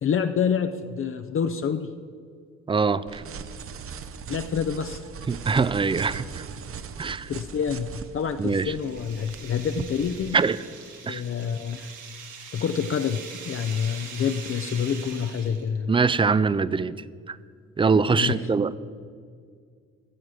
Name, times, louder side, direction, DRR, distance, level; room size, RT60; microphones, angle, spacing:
voice 1, 0.0-1.9 4.3-5.0 7.3-10.4 11.0-11.9 12.5-13.2 13.4-15.9 18.2-18.3, left 7 dB, 45° left, 8 dB, 0.6 m, -27 dB
voice 2, 2.7-3.2 5.3-6.4 7.0-7.3 8.4-8.7 10.3-10.6 11.1-11.2 15.9-17.0 17.3-17.4 17.8-18.8, right 5 dB, 20° right, 17 dB, 0.4 m, -23 dB
sound 1, 3.1-10.3, right 6 dB, 45° right, 0.7 m, -40 dB
sound 2, 8.2-15.8, right 6 dB, 85° right, 1.8 m, -42 dB
14.0 x 7.4 x 6.3 m, 2.1 s
cardioid pair, 90°, 30 cm